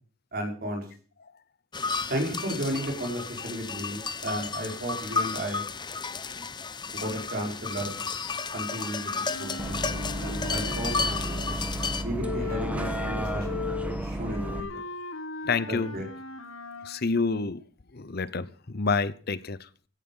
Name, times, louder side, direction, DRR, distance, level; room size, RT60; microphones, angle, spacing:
voice 1, 0.3-0.8 2.1-5.6 6.9-8.0 8.5-9.8 10.2-10.9 12.0-13.6 14.0-14.5 15.7-16.0, equal, 50° right, 5.1 m, -33 dB
sound 1, 1.7-12.0, left 4 dB, 20° left, 0.9 m, -33 dB
Wind instrument woodwind instrument, 8.7-11.6 12.2-17.0, left 4 dB, 85° left, 1.9 m, -38 dB
Bus, 9.6-14.6, right 1 dB, 5° right, 1.5 m, -32 dB
voice 2, 11.5-12.0 14.0-14.1 15.4-15.9 16.8-17.6 17.9-19.7, left 4 dB, 50° left, 0.8 m, -29 dB
16.5 x 11.0 x 5.6 m
head